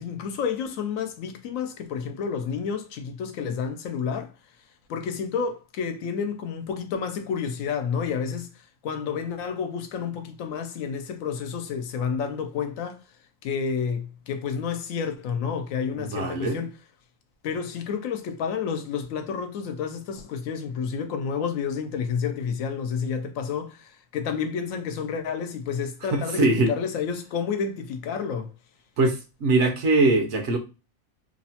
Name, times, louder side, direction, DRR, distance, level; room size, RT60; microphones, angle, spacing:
voice 1, 0.0-4.3 4.9-13.0 13.4-16.7 17.4-28.5, left 6 dB, 85° left, 1.0 m, -30 dB
voice 2, 16.0-16.6 26.1-26.7 29.0-30.6, right 2 dB, 65° right, 1.0 m, -22 dB
2.9 x 2.0 x 2.8 m
omnidirectional pair, 1.4 m